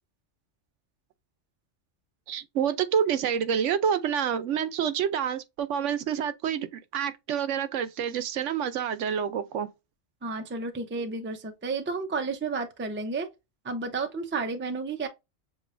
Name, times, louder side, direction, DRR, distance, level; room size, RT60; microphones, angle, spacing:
voice 1, 2.3-6.7 6.9-9.7, right 8 dB, 75° right, 0.9 m, -28 dB
voice 2, 10.2-13.3 13.6-15.1, right 4 dB, 15° right, 0.4 m, -31 dB
7.1 x 2.6 x 2.5 m
omnidirectional pair, 1.3 m